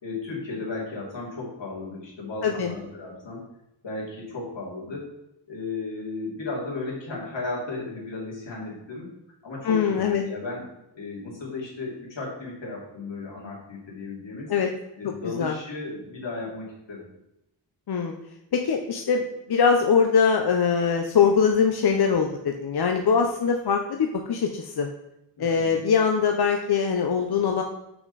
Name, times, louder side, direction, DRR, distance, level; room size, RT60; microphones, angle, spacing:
voice 1, 0.0-3.4 3.8-5.1 5.5-9.1 9.4-10.7 10.9-14.5 15.0-17.1 25.4-25.7, left 3 dB, 90° left, -4 dB, 2.8 m, -35 dB
voice 2, 9.6-10.2 14.5-14.7 15.4-15.5 17.9-18.1 18.5-24.9 25.4-27.6, left 6 dB, 60° left, 3 dB, 0.7 m, -22 dB
7.2 x 5.8 x 4.1 m, 0.87 s
wide cardioid pair, 120°, 43 cm